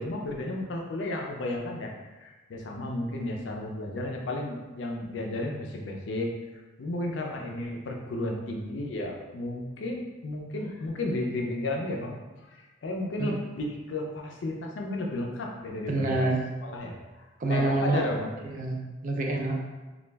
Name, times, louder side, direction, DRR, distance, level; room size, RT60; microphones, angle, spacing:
voice 1, 0.0-12.2 12.4-16.4 16.6-18.3, left 1 dB, 75° left, 0 dB, 0.4 m, -33 dB
voice 2, 15.9-16.4 17.4-18.0 18.4-19.6, right 2 dB, 45° right, 0 dB, 0.4 m, -27 dB
2.3 x 2.0 x 3.3 m, 1.2 s
head